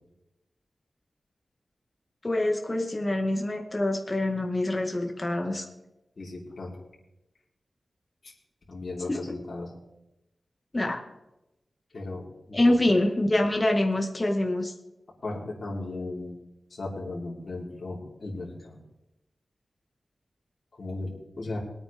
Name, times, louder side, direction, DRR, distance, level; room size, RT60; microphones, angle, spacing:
voice 1, 2.2-5.7 9.1-9.2 10.7-11.0 12.5-14.7, left 1 dB, 25° left, 2 dB, 2.1 m, -25 dB
voice 2, 6.2-6.7 8.7-9.7 11.9-12.2 12.5-12.8 15.2-16.4 16.7-18.7 20.8-21.1 21.3-21.6, left 2 dB, 55° left, -5 dB, 4.1 m, -36 dB
22.0 x 8.9 x 3.7 m, 0.92 s
wide cardioid pair, 120°, 0 cm